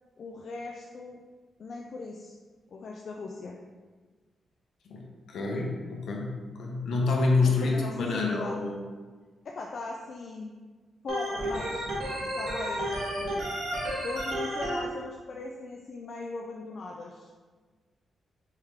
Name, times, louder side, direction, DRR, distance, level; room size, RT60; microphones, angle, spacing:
voice 1, 0.2-1.2 1.6-2.3 2.7-3.5 7.4-8.6 9.4-10.6 11.0-11.9 12.2-13.5 14.0-17.3, left 3 dB, 50° left, 0 dB, 0.3 m, -39 dB
voice 2, 4.9-8.8, left 3 dB, 70° left, 0 dB, 0.8 m, -27 dB
Organ, 11.1-14.8, right 1 dB, 75° right, 1.4 m, -32 dB
4.6 x 3.6 x 3.2 m, 1.4 s
wide cardioid pair, 155°, 0 cm